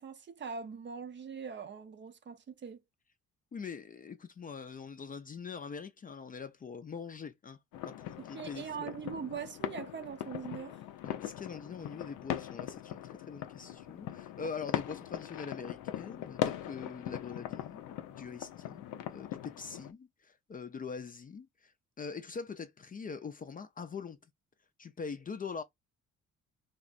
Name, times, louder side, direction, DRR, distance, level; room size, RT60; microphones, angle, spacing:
voice 1, 0.0-2.8 8.2-10.8, right 6 dB, 40° right, 0.6 m, -42 dB
voice 2, 3.5-7.6 7.8-8.9 11.0-24.2 24.8-25.6, left 5 dB, 30° left, 0.4 m, -43 dB
sound 1, 7.7-19.9, left 11 dB, 90° left, 0.5 m, -40 dB
3.5 x 2.1 x 2.4 m
cardioid pair, 90°, 30 cm